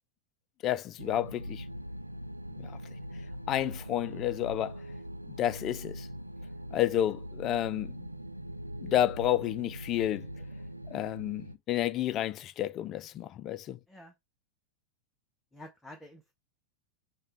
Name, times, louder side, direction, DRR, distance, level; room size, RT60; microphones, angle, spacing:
voice 1, 0.6-1.6 2.6-2.8 3.5-4.8 5.4-6.1 6.7-8.1 8.8-10.3 10.9-13.8, left 12 dB, 35° left, 0.3 m, -30 dB
sound 1, 1.0-11.6, equal, 85° right, 0.3 m, -42 dB
voice 2, 15.5-16.3, left 1 dB, 5° left, 0.7 m, -49 dB
5.0 x 2.2 x 4.2 m
figure-of-eight pair, 90°, 0 cm